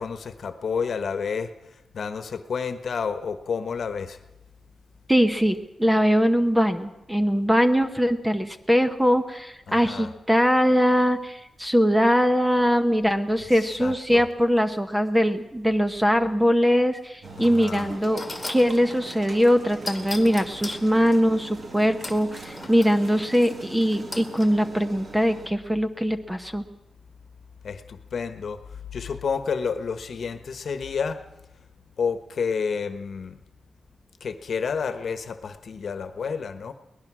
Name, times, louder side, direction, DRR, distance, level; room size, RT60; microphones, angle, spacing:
voice 1, 0.0-1.5 1.9-4.2 9.7-10.1 13.8-14.2 17.4-17.9 27.6-31.2 32.0-33.4 34.2-36.7, left 6 dB, 55° left, 10 dB, 1.3 m, -30 dB
voice 2, 5.1-18.2 18.5-26.6, equal, 5° right, 8 dB, 0.9 m, -21 dB
sound 1, 17.2-25.5, right 3 dB, 35° right, 2.0 m, -41 dB
sound 2, 18.2-18.7 19.9-20.9 22.0-23.0 24.1-24.5, left 2 dB, 15° left, 2.0 m, -37 dB
22.5 x 19.0 x 6.2 m, 0.90 s
wide cardioid pair, 175°, 0 cm